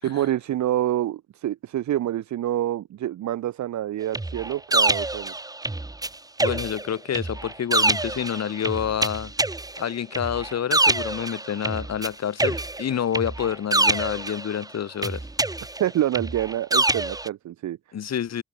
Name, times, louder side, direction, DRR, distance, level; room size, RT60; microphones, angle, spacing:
voice 1, 0.0-5.3 15.8-17.8, right 12 dB, 70° right, 1.5 m, -27 dB
sound 1, 4.1-6.1 6.4-12.1 12.4-14.6 15.0-17.3, right 2 dB, 10° right, 1.7 m, -25 dB
voice 2, 6.4-9.3 9.8-15.3 17.9-18.4, left 9 dB, 60° left, 6.0 m, -28 dB
open air
cardioid pair, 90°, 30 cm